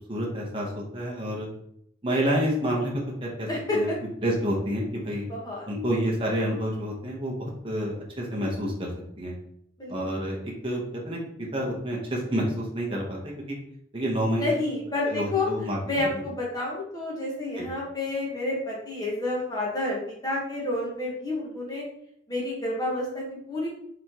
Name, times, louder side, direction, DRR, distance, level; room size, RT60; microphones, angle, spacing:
voice 1, 0.1-1.5 2.0-2.9 3.2-3.5 3.7-3.9 4.2-5.3 5.7-8.9 9.2-9.3 9.9-13.6 13.9-14.5 15.0-16.2 17.6-17.7, equal, 30° right, -2 dB, 0.9 m, -29 dB
voice 2, 3.5-4.0 5.3-5.7 9.8-10.0 14.3-15.5 15.8-21.8 22.3-23.7, left 2 dB, 20° left, -4 dB, 1.3 m, -29 dB
5.0 x 3.6 x 3.0 m, 0.71 s
head